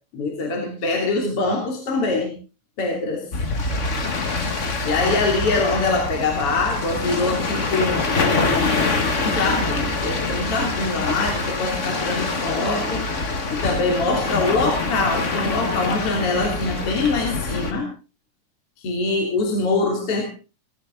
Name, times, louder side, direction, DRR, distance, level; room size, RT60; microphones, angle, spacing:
voice 1, 0.1-2.3 2.8-3.3 4.8-8.8 9.2-13.1 13.5-17.9 18.8-20.3, left 3 dB, 50° left, 1 dB, 3.9 m, -24 dB
sound 1, 3.3-17.7, left 3 dB, 30° left, 1.5 m, -25 dB
17.5 x 16.5 x 3.9 m, 0.34 s
omnidirectional pair, 3.4 m